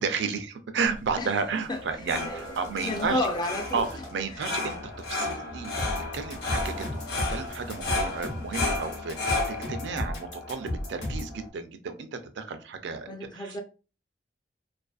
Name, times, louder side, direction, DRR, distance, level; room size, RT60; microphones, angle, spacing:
voice 1, 0.0-3.2 3.7-6.9 7.1-13.6, right 5 dB, 75° right, 0.4 m, -32 dB
sound 1, 0.9-9.8, left 1 dB, 45° left, 1.0 m, -47 dB
sound 2, 1.7-11.5, left 3 dB, 60° left, 0.7 m, -34 dB
voice 2, 2.3-3.8 4.3-4.5 13.1-13.6, left 1 dB, 25° left, 0.4 m, -31 dB
sound 3, 5.8-11.4, left 1 dB, 80° left, 1.1 m, -33 dB
2.5 x 2.3 x 2.3 m
head